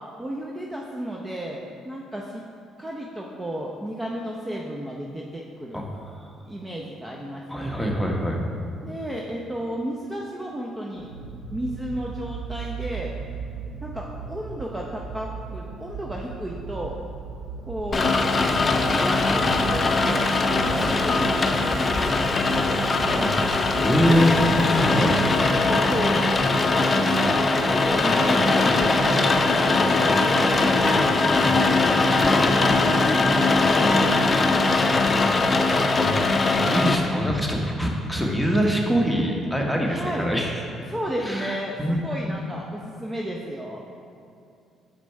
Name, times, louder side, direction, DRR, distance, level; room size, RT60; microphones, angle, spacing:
voice 1, 0.2-2.4 2.8-5.8 6.5-7.8 8.8-11.1 11.5-13.1 13.8-17.0 17.6-18.2 18.9-22.3 24.8-26.2 27.0-31.8 32.1-34.8 39.9-40.3 40.9-43.8, equal, 20° right, -1 dB, 0.7 m, -33 dB
voice 2, 7.5-8.4 23.2-25.1 36.0-36.3 36.7-40.5 41.3-41.5 41.8-42.0, equal, ahead, -1 dB, 1.2 m, -24 dB
sound 1, 10.9-26.3, right 5 dB, 90° right, 0.5 m, -37 dB
Rain, 17.9-36.9, left 3 dB, 35° left, 0.6 m, -21 dB
6.4 x 5.0 x 4.6 m, 2.5 s
supercardioid pair, 60°, 0 cm